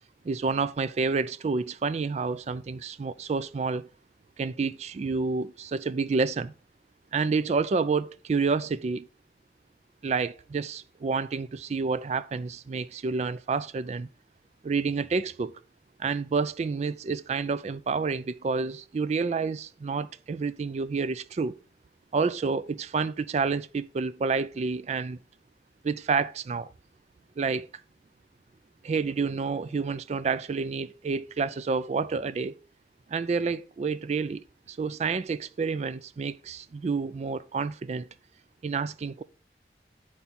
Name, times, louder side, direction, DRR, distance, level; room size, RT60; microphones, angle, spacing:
voice 1, 0.2-3.9 4.4-6.5 7.1-9.1 10.0-14.1 14.6-15.5 16.0-21.5 22.1-25.2 25.8-26.7 27.4-27.7 28.8-32.5 33.1-38.1 38.6-39.2, right 4 dB, 40° right, 0.3 m, -29 dB
8.5 x 4.5 x 4.1 m
head